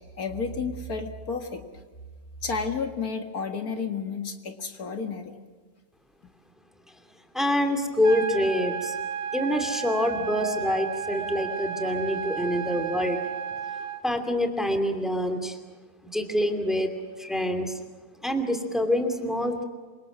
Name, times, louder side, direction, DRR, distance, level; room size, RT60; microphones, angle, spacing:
voice 1, 0.2-1.6 2.4-5.3, left 5 dB, 70° left, 5 dB, 2.3 m, -31 dB
voice 2, 7.3-8.9 9.3-13.2 14.0-15.6 16.0-16.9 17.2-17.8 18.2-19.6, left 1 dB, ahead, 5 dB, 2.6 m, -26 dB
sound 1, 8.0-14.0, right 8 dB, 75° right, 1.5 m, -33 dB
27.5 x 25.5 x 6.3 m, 1.4 s
omnidirectional pair, 1.6 m